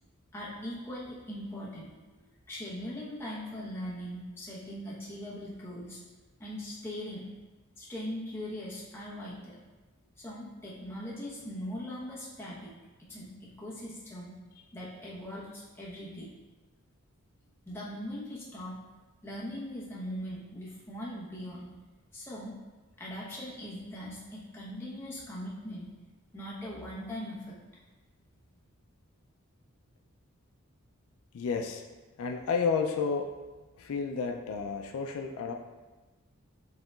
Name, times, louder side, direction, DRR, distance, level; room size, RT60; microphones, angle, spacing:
voice 1, 0.3-6.0 6.4-7.3 7.8-9.6 10.2-12.7 13.0-14.4 14.7-16.3 17.7-18.8 19.2-21.7 22.1-22.5 23.0-25.9 26.3-27.6, equal, 10° left, -7 dB, 0.9 m, -40 dB
voice 2, 31.3-31.8 32.2-33.3 33.8-35.5, left 5 dB, 75° left, 3 dB, 0.4 m, -31 dB
7.6 x 2.8 x 2.3 m, 1.2 s
head